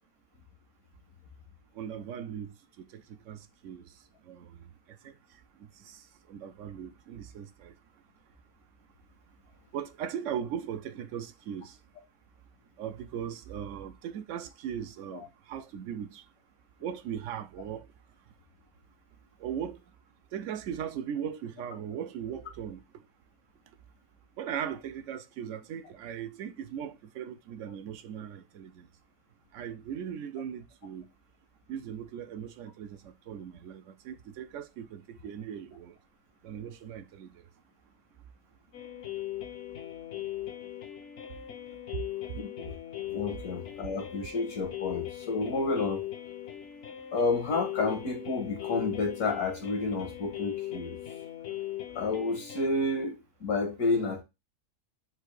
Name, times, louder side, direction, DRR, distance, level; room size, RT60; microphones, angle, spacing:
voice 1, 1.7-3.9 4.3-4.6 5.0-5.1 5.8-7.7 9.7-11.8 12.8-16.2 16.8-17.9 19.4-19.8 20.3-22.8 24.4-28.9 29.5-31.1 31.7-36.0 36.4-37.4 41.9-42.0 42.3-42.4, right 9 dB, 65° right, 0.8 m, -38 dB
sound 1, 38.7-52.7, left 13 dB, 60° left, 0.9 m, -39 dB
voice 2, 42.3-42.8 43.1-46.0 47.1-51.0 51.9-54.2, left 3 dB, 80° left, 1.7 m, -30 dB
4.5 x 2.5 x 4.6 m
omnidirectional pair, 1.6 m